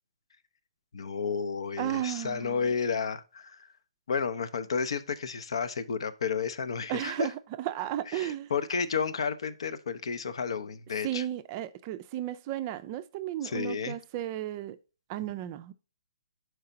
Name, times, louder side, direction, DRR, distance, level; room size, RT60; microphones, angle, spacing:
voice 1, 0.9-3.7 4.1-7.3 8.1-11.2 13.4-13.9, left 5 dB, 65° left, 0.5 m, -32 dB
voice 2, 1.8-2.6 6.9-8.5 11.0-14.8 15.1-15.7, right 13 dB, 30° right, 0.4 m, -34 dB
5.6 x 4.6 x 3.9 m
figure-of-eight pair, 135°, 3 cm